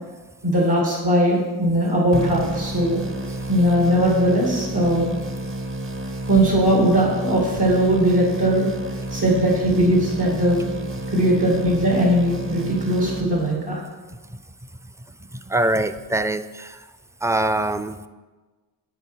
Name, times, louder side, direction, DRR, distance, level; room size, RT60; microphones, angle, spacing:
voice 1, 0.4-3.0 3.5-5.1 6.3-8.7 9.1-10.6 11.1-13.8, right 1 dB, 70° right, -2 dB, 2.3 m, -19 dB
sound 1, 2.1-13.8, right 1 dB, 30° right, 0.8 m, -31 dB
voice 2, 15.2-16.8 17.2-18.1, right 1 dB, 10° right, 11 dB, 0.3 m, -24 dB
11.0 x 4.5 x 4.6 m, 1.3 s
cardioid pair, 50°, 42 cm